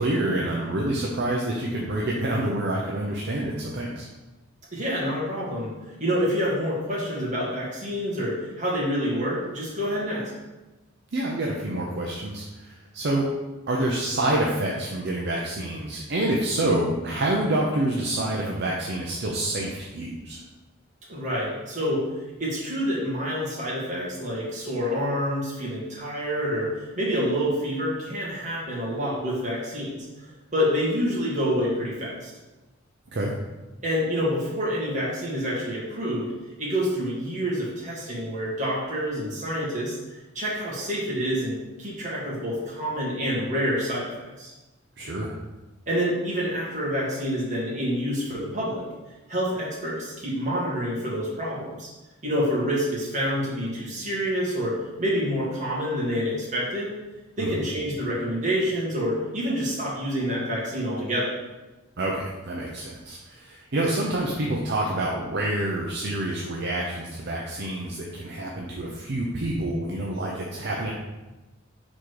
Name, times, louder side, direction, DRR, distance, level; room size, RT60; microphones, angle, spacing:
voice 1, 0.0-4.1 11.1-13.3 13.7-20.4 33.1-33.3 45.0-45.3 57.4-57.6 62.0-70.9, right 1 dB, 60° right, -2 dB, 0.7 m, -27 dB
voice 2, 4.7-5.7 6.0-10.3 21.1-22.0 22.4-30.3 30.5-32.3 33.8-36.3 36.6-40.0 40.3-44.1 44.4-44.5 45.9-48.8 49.3-51.9 52.2-56.9 57.4-61.3, equal, 40° right, -6 dB, 2.0 m, -27 dB
4.8 x 4.3 x 4.7 m, 1.1 s
head